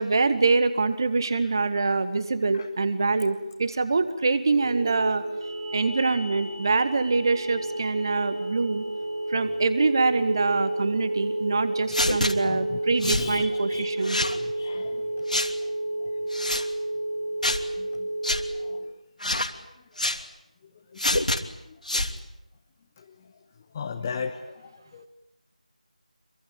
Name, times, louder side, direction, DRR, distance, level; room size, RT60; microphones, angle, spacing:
voice 1, 0.0-5.2 5.7-8.8 9.3-14.2, right 3 dB, 30° right, 12 dB, 1.7 m, -24 dB
sound 1, 4.5-18.8, right 1 dB, 55° right, 7.7 m, -31 dB
sound 2, 11.9-12.3 13.0-13.3 14.0-14.4 15.3-15.5 16.3-16.6 17.4-17.6 18.2-18.4 19.2-19.5 20.0-20.2 21.0-21.4 21.8-22.1, left 1 dB, 70° left, 2.9 m, -26 dB
voice 2, 12.4-15.5 16.0-16.1 16.5-16.7 17.8-18.1 18.4-18.9 19.7-19.8 20.7-21.8 23.0-23.3 23.7-25.1, left 5 dB, 15° left, 4 dB, 1.0 m, -39 dB
27.0 x 24.0 x 9.0 m, 0.90 s
figure-of-eight pair, 165°, 4 cm